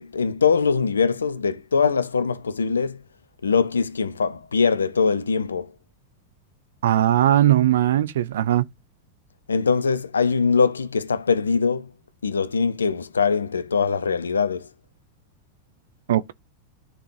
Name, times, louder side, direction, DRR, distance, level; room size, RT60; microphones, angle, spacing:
voice 1, 0.0-3.0 3.4-5.7 9.5-11.9 12.2-14.7, left 5 dB, 75° left, 0.7 m, -22 dB
voice 2, 6.8-8.6 16.1-16.3, right 12 dB, 60° right, 0.6 m, -19 dB
13.5 x 4.6 x 2.7 m
figure-of-eight pair, 90°, 0 cm